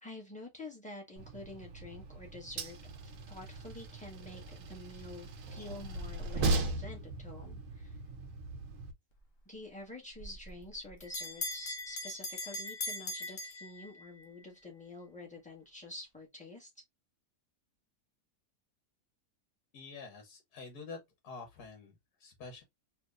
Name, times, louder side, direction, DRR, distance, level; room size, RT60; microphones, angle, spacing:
voice 1, 0.0-2.8 3.0-8.0 9.4-16.7, left 2 dB, 5° left, 1.5 m, -48 dB
Train, 1.2-8.9, right 2 dB, 60° right, 1.1 m, -38 dB
Bell, 10.2-14.3, left 2 dB, 45° left, 1.0 m, -40 dB
voice 2, 19.7-21.0 21.2-22.6, left 4 dB, 75° left, 1.6 m, -47 dB
4.3 x 2.8 x 2.4 m
omnidirectional pair, 1.6 m